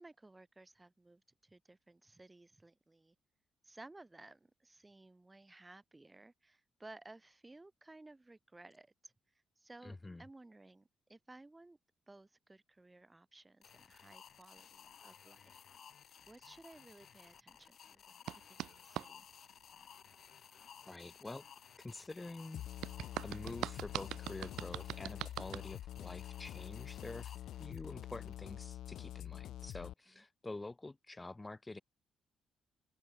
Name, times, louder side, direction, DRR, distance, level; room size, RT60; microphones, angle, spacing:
voice 1, 0.0-3.2 3.6-9.1 9.6-11.8 12.1-15.6 16.3-19.3 30.1-30.2, right 2 dB, 20° right, 7.1 m, -58 dB
voice 2, 9.8-10.2 20.8-21.4 21.8-22.6 23.2-31.8, left 2 dB, 20° left, 7.4 m, -47 dB
sound 1, 13.6-28.3, left 8 dB, 65° left, 3.8 m, -58 dB
sound 2, 18.3-19.1 22.8-25.7, right 13 dB, 85° right, 1.2 m, -42 dB
sound 3, 22.5-29.9, left 12 dB, 80° left, 1.5 m, -46 dB
open air
supercardioid pair, 65°, 0 cm